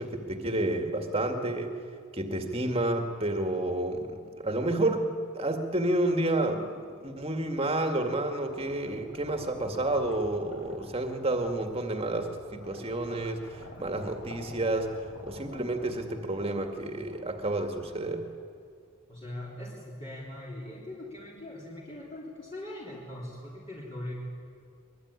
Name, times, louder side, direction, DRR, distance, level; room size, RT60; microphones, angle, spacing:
voice 1, 0.0-1.8 2.1-14.9 15.2-18.2, right 1 dB, 25° right, 5 dB, 2.1 m, -30 dB
sound 1, 7.6-18.7, left 1 dB, 55° left, 5.7 m, -49 dB
voice 2, 19.1-24.1, left 1 dB, 25° left, -5 dB, 3.4 m, -41 dB
23.0 x 21.5 x 9.7 m, 2.2 s
head